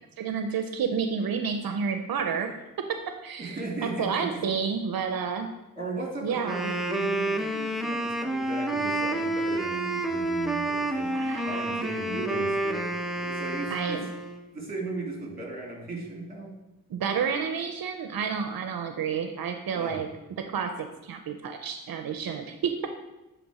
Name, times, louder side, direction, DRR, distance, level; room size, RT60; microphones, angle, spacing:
voice 1, 0.2-2.9 3.2-5.5 6.2-6.7 11.1-12.0 13.7-14.1 16.9-20.1 20.4-23.0, right 6 dB, 85° right, 6 dB, 0.6 m, -30 dB
voice 2, 3.4-4.5 5.8-14.1 14.5-16.5 19.7-20.1, right 3 dB, 25° right, 0 dB, 2.3 m, -36 dB
Wind instrument woodwind instrument, 6.3-14.5, right 1 dB, ahead, 0.7 m, -29 dB
10.5 x 3.4 x 4.8 m, 1.0 s
cardioid pair, 75°, 35 cm